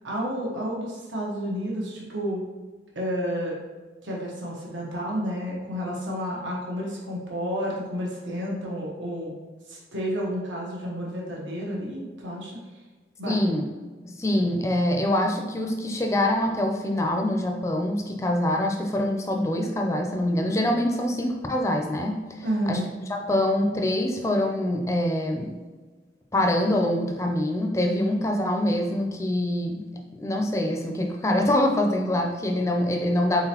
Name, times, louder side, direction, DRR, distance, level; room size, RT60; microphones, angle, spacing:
voice 1, 0.0-2.4 2.9-3.5 4.0-9.3 9.7-12.5 13.2-13.4 22.4-22.9, equal, 90° right, -3 dB, 1.0 m, -30 dB
voice 2, 13.3-13.7 14.0-22.8 23.1-25.5 26.3-29.8 30.2-33.4, left 1 dB, 15° left, 2 dB, 0.4 m, -25 dB
4.1 x 3.8 x 2.9 m, 1.3 s
head